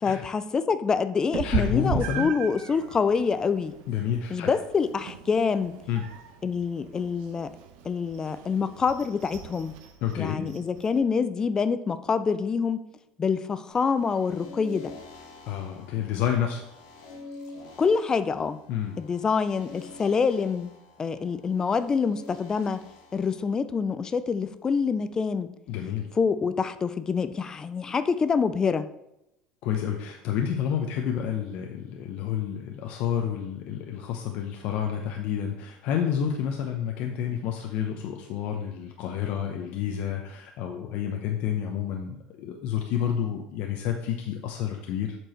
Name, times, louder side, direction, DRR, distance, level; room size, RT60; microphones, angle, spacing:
voice 1, 0.0-3.7 4.3-5.8 6.4-7.5 7.8-9.7 10.2-12.8 13.2-14.9 17.8-18.6 19.0-20.7 21.0-22.8 23.1-25.5 26.2-28.9, left 5 dB, 25° left, 13 dB, 0.4 m, -26 dB
Meow, 1.3-11.0, right 8 dB, 70° right, 0.9 m, -37 dB
voice 2, 1.4-2.3 3.9-4.5 5.9-6.0 10.0-10.5 15.5-16.6 18.7-19.0 25.7-26.1 29.6-45.2, left 9 dB, 65° left, 2 dB, 0.8 m, -29 dB
sound 1, 13.7-23.5, left 3 dB, 85° left, 2.1 m, -47 dB
7.7 x 4.6 x 4.4 m, 0.85 s
supercardioid pair, 120°, 3 cm